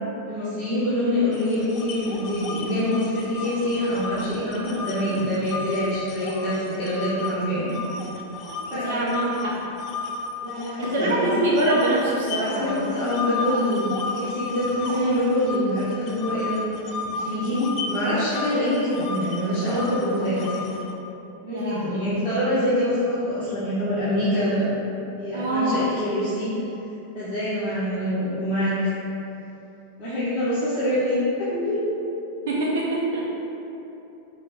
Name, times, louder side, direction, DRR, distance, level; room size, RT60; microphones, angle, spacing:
voice 1, 0.3-7.7 8.5-9.0 10.4-11.3 12.4-16.6 17.1-20.6 21.4-24.7 25.2-26.5 27.1-28.7 30.0-31.8, left 1 dB, 15° left, -14 dB, 1.2 m, -25 dB
sound 1, 1.3-7.3 7.7-11.1 11.5-20.9, left 4 dB, 35° left, 0.4 m, -33 dB
voice 2, 8.7-9.6 10.6-12.9 13.2-13.3 21.5-22.0 25.3-25.8 32.5-33.3, right 1 dB, 55° right, -5 dB, 0.6 m, -24 dB
5.4 x 2.2 x 3.6 m, 3.0 s
figure-of-eight pair, 90°, 0 cm